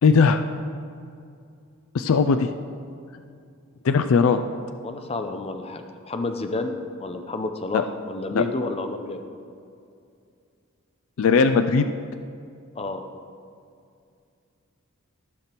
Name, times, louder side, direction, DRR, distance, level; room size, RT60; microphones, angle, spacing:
voice 1, 0.0-0.4 1.9-2.5 3.8-4.4 7.7-7.8 8.3-8.4 11.2-11.9, left 5 dB, 75° left, 9 dB, 0.4 m, -18 dB
voice 2, 4.8-6.7 7.0-9.2 12.8-13.0, left 2 dB, 30° left, 6 dB, 0.6 m, -30 dB
13.5 x 5.9 x 4.4 m, 2.4 s
head